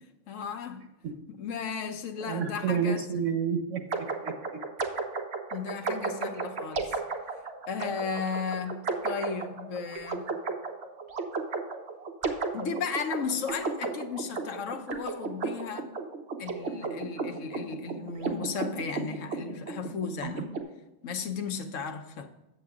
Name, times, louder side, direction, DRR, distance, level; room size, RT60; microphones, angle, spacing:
voice 1, 0.3-0.9 1.4-3.2 5.5-7.0 7.7-10.3 12.5-15.9 16.4-20.5 21.0-22.3, left 5 dB, 85° left, 1.2 m, -35 dB
voice 2, 2.2-4.6, right 6 dB, 75° right, 1.4 m, -30 dB
sound 1, 3.9-20.6, right 4 dB, 60° right, 1.2 m, -34 dB
8.6 x 7.2 x 3.6 m
omnidirectional pair, 1.3 m